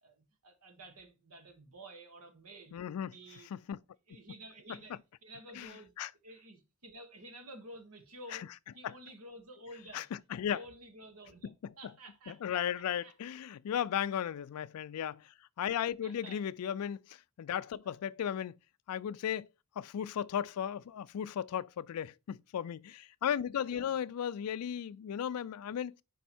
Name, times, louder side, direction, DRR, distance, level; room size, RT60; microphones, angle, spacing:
voice 1, 0.0-2.8 3.1-3.5 4.1-5.9 6.2-8.5 8.7-10.1 10.5-13.1 15.6-16.4 17.8-18.2 23.5-24.0, right 1 dB, 80° right, 1.5 m, -52 dB
voice 2, 2.7-3.1 3.5-3.8 5.5-5.7 6.0-6.1 8.8-8.9 9.9-10.6 11.4-11.7 12.3-15.2 15.6-18.6 18.9-19.5 19.8-26.0, left 9 dB, 80° left, 0.3 m, -35 dB
5.3 x 4.5 x 4.2 m
head